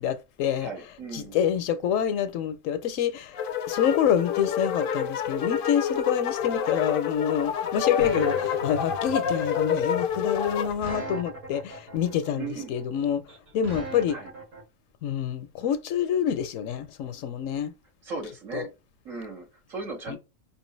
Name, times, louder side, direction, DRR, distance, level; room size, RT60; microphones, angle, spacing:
voice 1, 0.0-0.7 1.1-3.4 3.7-13.2 13.5-14.2 15.0-17.7 18.5-18.7 20.1-20.2, left 9 dB, 85° left, 1.1 m, -27 dB
voice 2, 0.6-1.4 12.4-12.7 14.1-14.3 18.0-18.7 19.0-20.2, right 4 dB, 90° right, 2.4 m, -37 dB
sound 1, 3.3-10.7, left 7 dB, 60° left, 0.6 m, -28 dB
sound 2, 6.4-14.6, right 2 dB, 70° right, 2.4 m, -39 dB
5.2 x 2.8 x 3.1 m
omnidirectional pair, 1.3 m